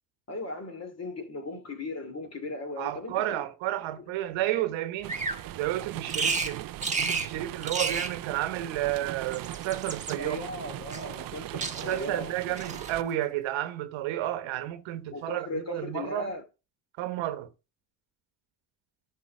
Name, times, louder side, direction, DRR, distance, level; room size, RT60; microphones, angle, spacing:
voice 1, 0.3-3.4 10.2-12.8 15.1-16.4, left 2 dB, 35° left, 2.8 m, -37 dB
voice 2, 2.8-5.2 5.6-6.7 7.0-10.4 11.8-16.3 17.0-17.5, right 13 dB, 75° right, 1.2 m, -31 dB
sound 1, 5.0-13.0, right 14 dB, 50° right, 0.5 m, -39 dB
Bird vocalization bird call bird song, 5.1-5.4 6.1-6.5 6.8-7.3 7.6-8.1 9.2-10.1 10.9-11.4 11.6-12.1 12.6-12.9, right 4 dB, 15° right, 1.5 m, -31 dB
10.5 x 5.6 x 4.8 m
supercardioid pair, 80°, 46 cm